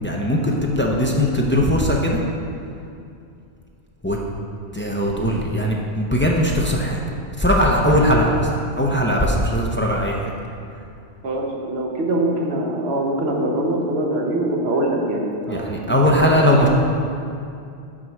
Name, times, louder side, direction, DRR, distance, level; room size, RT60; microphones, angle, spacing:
voice 1, 0.0-2.2 4.0-4.2 4.7-7.0 7.4-10.3 15.5-16.7, equal, 15° left, -2 dB, 0.4 m, -19 dB
voice 2, 11.2-15.7 16.4-16.7, right 1 dB, 65° right, -1 dB, 1.3 m, -23 dB
6.0 x 4.6 x 6.3 m, 2.5 s
omnidirectional pair, 1.2 m